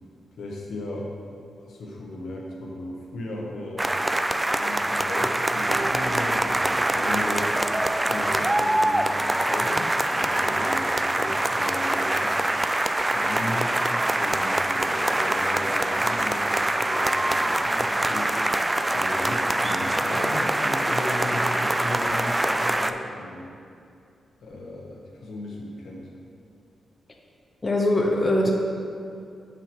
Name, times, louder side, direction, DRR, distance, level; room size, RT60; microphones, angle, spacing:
voice 1, 0.4-1.1 1.5-3.9 4.5-7.5 8.0-12.4 13.1-13.8 14.1-18.3 18.9-23.5 24.4-26.1, left 1 dB, 80° left, -2 dB, 1.1 m, -35 dB
sound 1, 3.8-22.9, right 1 dB, 20° right, 0.3 m, -24 dB
sound 2, 5.7-9.2, right 2 dB, 65° right, 0.5 m, -40 dB
voice 2, 27.6-28.5, left 1 dB, 35° left, 0 dB, 0.7 m, -21 dB
4.8 x 4.5 x 5.9 m, 2.4 s
cardioid pair, 60°, 0 cm